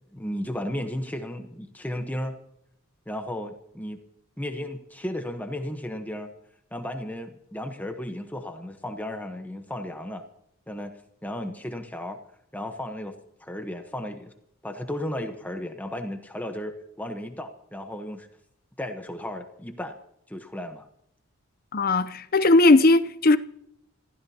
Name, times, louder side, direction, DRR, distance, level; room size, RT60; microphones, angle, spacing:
voice 1, 0.1-2.4 3.1-4.0 4.4-6.3 6.7-10.2 10.7-11.0 11.2-12.2 12.5-14.3 14.6-18.3 18.8-20.0 20.3-20.9, left 1 dB, 5° left, 1.0 m, -34 dB
voice 2, 21.7-23.4, left 2 dB, 45° left, 0.6 m, -18 dB
27.0 x 15.5 x 2.9 m
head